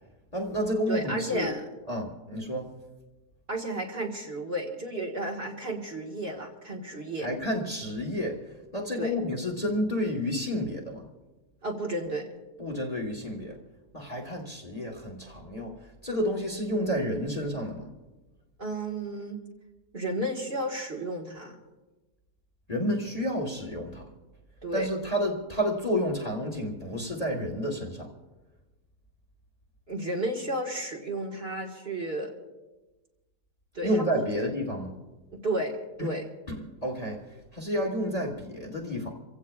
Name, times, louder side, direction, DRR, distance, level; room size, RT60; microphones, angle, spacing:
voice 1, 0.3-1.5 1.9-2.7 7.2-8.4 8.7-11.0 12.6-13.6 13.9-15.7 16.0-17.9 22.7-24.0 24.7-28.1 33.8-34.9 36.0-36.1 36.5-37.2 37.5-39.1, equal, 25° left, 0 dB, 1.5 m, -30 dB
voice 2, 0.9-1.6 3.5-7.3 9.0-9.1 11.6-12.3 18.6-19.4 19.9-21.6 24.6-24.9 29.9-32.3 33.7-34.3 35.3-36.3, right 1 dB, 40° right, -1 dB, 1.9 m, -32 dB
28.0 x 16.0 x 2.4 m, 1.2 s
omnidirectional pair, 1.7 m